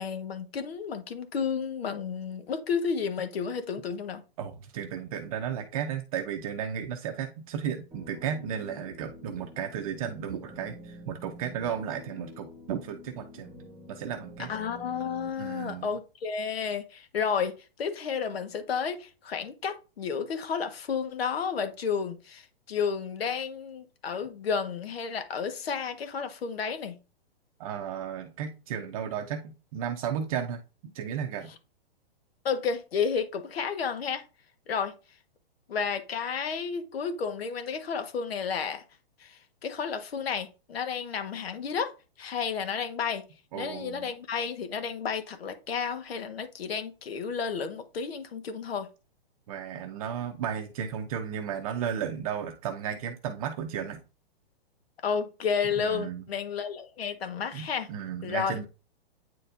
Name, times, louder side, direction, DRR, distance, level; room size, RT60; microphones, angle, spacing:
voice 1, 0.0-4.2 14.5-27.0 32.4-34.2 34.7-34.9 35.7-38.8 39.2-41.9 42.2-43.2 43.5-48.9 55.0-57.9 58.2-58.6, left 6 dB, 70° left, 1.5 m, -32 dB
voice 2, 4.4-13.5 13.9-14.5 15.4-15.9 27.6-30.6 30.9-31.5 43.5-44.1 49.5-54.0 55.8-56.2 57.5-58.6, right 8 dB, 35° right, 0.7 m, -34 dB
sound 1, 7.9-15.3, left 1 dB, 10° right, 1.3 m, -48 dB
9.2 x 4.2 x 2.6 m
hypercardioid pair, 155°, 31 cm